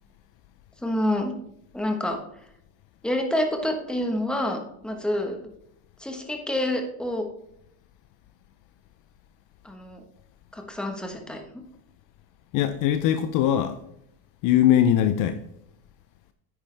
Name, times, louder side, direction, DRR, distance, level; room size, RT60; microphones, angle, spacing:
voice 1, 0.8-1.3 1.7-2.2 3.0-5.4 6.0-7.2 9.6-10.0 10.5-11.4, left 1 dB, ahead, 1.2 m, -27 dB
voice 2, 12.5-13.8 14.4-15.4, left 10 dB, 45° left, 0.6 m, -21 dB
9.8 x 9.2 x 3.4 m
supercardioid pair, 140°, 44 cm